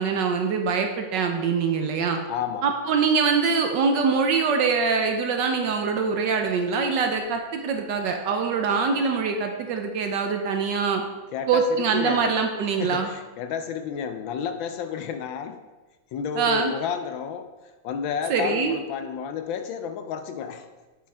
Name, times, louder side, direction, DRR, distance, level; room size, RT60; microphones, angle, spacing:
voice 1, 0.0-2.2 2.6-11.0 11.5-13.1 16.4-16.7 18.3-18.8, right 5 dB, 70° right, 4 dB, 1.2 m, -24 dB
voice 2, 2.3-2.7 11.3-11.7 11.9-12.3 12.8-15.6 16.1-17.5 17.8-20.6, left 7 dB, 75° left, 7 dB, 1.2 m, -31 dB
7.6 x 6.9 x 3.3 m, 1.2 s
omnidirectional pair, 2.3 m